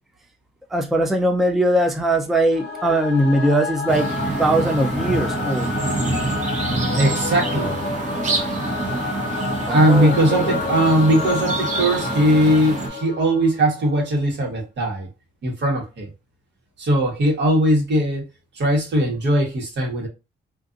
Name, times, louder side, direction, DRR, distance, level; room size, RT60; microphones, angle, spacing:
voice 1, 0.7-5.7 9.7-10.6, right 1 dB, ahead, 0.4 m, -21 dB
Singing / Musical instrument, 2.5-13.8, left 3 dB, 55° left, 0.9 m, -29 dB
sound 1, 3.9-12.9, right 3 dB, 40° right, 0.9 m, -26 dB
voice 2, 7.0-7.8 9.7-15.1 15.4-16.1 16.8-18.2 18.5-20.1, right 1 dB, 65° right, 1.3 m, -19 dB
2.5 x 2.5 x 2.5 m
cardioid pair, 90°, 20 cm